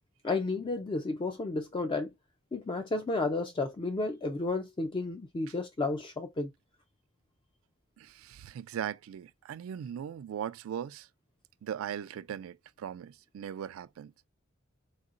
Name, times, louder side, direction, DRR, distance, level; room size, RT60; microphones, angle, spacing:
voice 1, 0.2-2.1 2.5-6.5, left 3 dB, 25° left, 0.4 m, -32 dB
voice 2, 8.0-11.1 11.6-14.1, right 9 dB, 75° right, 0.3 m, -39 dB
4.0 x 3.6 x 2.4 m
head